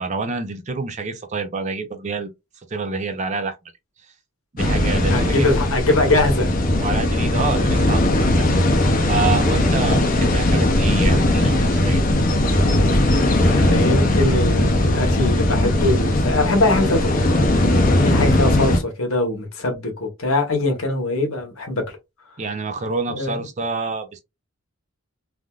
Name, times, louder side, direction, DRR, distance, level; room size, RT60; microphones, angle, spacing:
voice 1, 0.0-3.6 4.5-5.5 6.8-8.5 9.1-12.0 22.4-24.2, right 4 dB, 30° right, 0.5 m, -27 dB
sound 1, 4.6-18.8, left 1 dB, 40° left, 0.6 m, -18 dB
voice 2, 5.1-6.5 8.5-8.7 13.4-17.4 18.0-21.8 23.1-23.4, left 2 dB, 70° left, 1.1 m, -22 dB
3.4 x 2.5 x 2.3 m
head